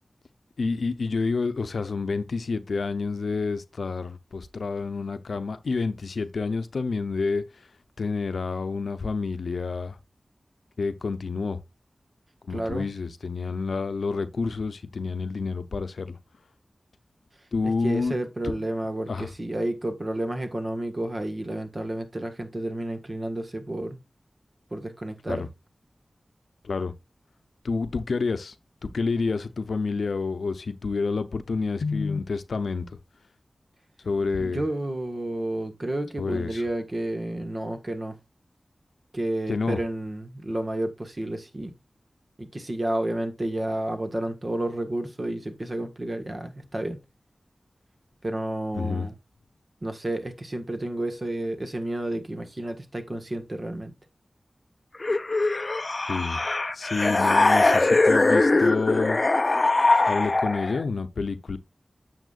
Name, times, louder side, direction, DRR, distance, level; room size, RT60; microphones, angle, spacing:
voice 1, 0.6-7.4 8.0-10.0 10.8-11.6 12.5-16.2 17.5-18.2 18.4-18.5 19.1-19.3 25.3-25.5 26.6-26.9 27.6-28.5 28.8-32.9 34.0-34.6 36.2-36.6 39.5-39.8 48.7-49.1 56.1-56.4 56.7-59.2 60.1-61.6, left 4 dB, 90° left, 0.7 m, -28 dB
voice 2, 12.5-12.9 17.6-24.0 24.7-25.5 34.4-38.2 39.1-41.7 42.4-47.0 48.2-49.2 49.8-53.9, right 1 dB, 40° right, 1.5 m, -31 dB
sound 1, 55.0-60.8, left 2 dB, 45° left, 0.5 m, -21 dB
9.1 x 7.2 x 2.5 m
wide cardioid pair, 60°, 0 cm